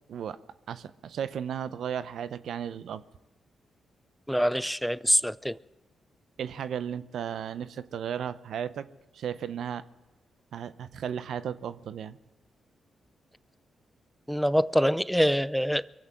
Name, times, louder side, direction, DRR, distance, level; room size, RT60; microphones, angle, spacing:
voice 1, 0.7-3.0 6.4-8.9 9.1-9.8 10.5-12.2, right 8 dB, 75° right, 0.6 m, -35 dB
voice 2, 4.3-5.6 14.3-15.8, equal, ahead, 0.4 m, -25 dB
23.0 x 8.0 x 7.5 m
supercardioid pair, 50°, 0 cm